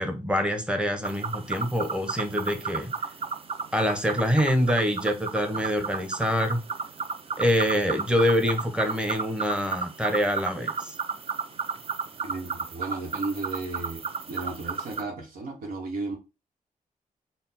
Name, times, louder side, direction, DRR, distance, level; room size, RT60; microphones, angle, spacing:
voice 1, 0.0-2.9 3.7-6.6 7.4-11.0, equal, 5° right, 0.8 m, -25 dB
sound 1, 1.0-15.0, right 5 dB, 40° right, 0.5 m, -33 dB
voice 2, 12.2-14.0 14.3-16.2, right 3 dB, 85° right, 0.9 m, -34 dB
4.0 x 2.0 x 4.0 m
cardioid pair, 95°, 14 cm